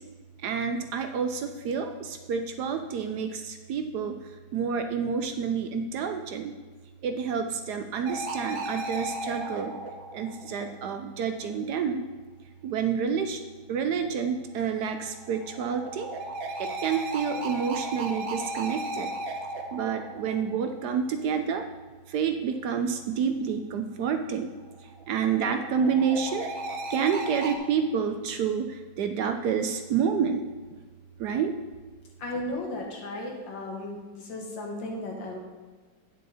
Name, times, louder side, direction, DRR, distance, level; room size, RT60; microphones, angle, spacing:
voice 1, 0.4-4.2 4.5-6.5 7.0-9.7 10.1-12.0 12.6-13.4 13.7-16.1 16.6-19.1 19.7-21.7 22.1-24.5 25.1-26.5 26.9-30.4 31.2-31.5, right 6 dB, 70° right, 7 dB, 1.1 m, -28 dB
sound 1, 8.1-11.1 14.6-21.1 24.6-27.6, right 2 dB, 85° right, 1.7 m, -36 dB
voice 2, 32.2-35.4, left 1 dB, 75° left, 0 dB, 2.3 m, -35 dB
9.4 x 7.3 x 4.2 m, 1.3 s
omnidirectional pair, 2.0 m